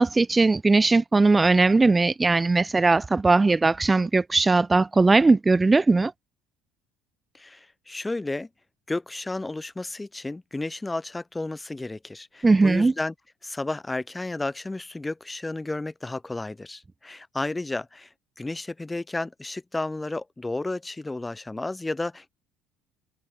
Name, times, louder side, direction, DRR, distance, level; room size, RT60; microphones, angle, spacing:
voice 1, 0.0-6.1 12.4-12.9, right 3 dB, 20° right, 0.4 m, -19 dB
voice 2, 7.3-8.5 8.9-13.1 13.4-18.1 18.4-22.3, left 2 dB, 15° left, 1.3 m, -32 dB
hypercardioid pair, 60°, 0 cm